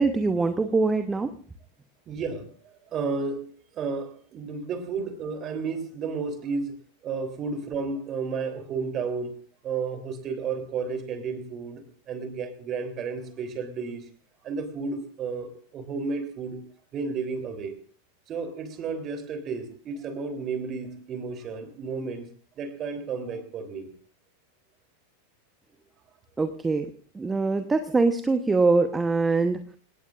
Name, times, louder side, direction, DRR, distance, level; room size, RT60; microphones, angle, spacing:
voice 1, 0.0-1.3 26.4-26.9 27.1-29.6, right 3 dB, 10° right, 9 dB, 1.0 m, -23 dB
voice 2, 2.1-2.5 2.9-6.8 7.0-9.3 9.6-14.1 14.4-16.6 16.9-17.7 18.3-22.3 22.6-23.9, right 4 dB, 30° right, 7 dB, 3.3 m, -32 dB
27.0 x 18.0 x 2.5 m, 0.42 s
figure-of-eight pair, 90°, 0 cm